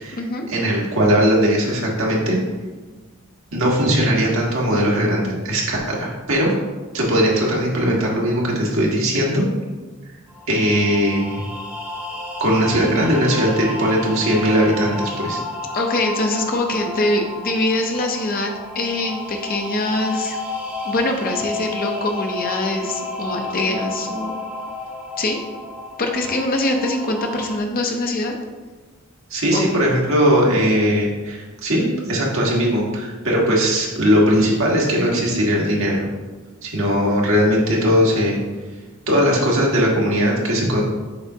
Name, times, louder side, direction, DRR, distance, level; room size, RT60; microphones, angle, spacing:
voice 1, 0.5-2.4 3.5-6.5 6.9-9.4 10.5-11.4 12.4-15.4 29.3-36.1 36.6-38.4 39.1-40.8, equal, 70° right, -3 dB, 1.5 m, -19 dB
sound 1, 10.3-27.6, left 2 dB, 10° right, 1.0 m, -31 dB
voice 2, 15.7-20.4 20.8-24.4 25.2-25.4 26.0-28.3 29.5-29.6, left 2 dB, 45° left, 3 dB, 0.7 m, -23 dB
6.8 x 5.1 x 2.8 m, 1.3 s
head